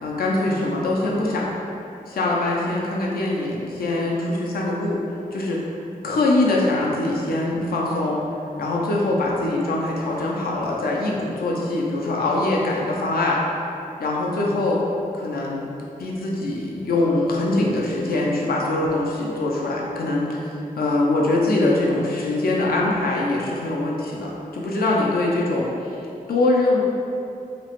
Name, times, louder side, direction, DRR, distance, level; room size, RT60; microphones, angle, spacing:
voice 1, 0.0-1.5 2.1-5.0 5.3-5.6 6.0-8.2 8.6-13.4 14.0-14.8 15.1-15.7 16.0-25.7 26.3-26.8, left 2 dB, 90° left, -3 dB, 0.4 m, -23 dB
2.8 x 2.1 x 2.9 m, 2.7 s
wide cardioid pair, 75°, 15 cm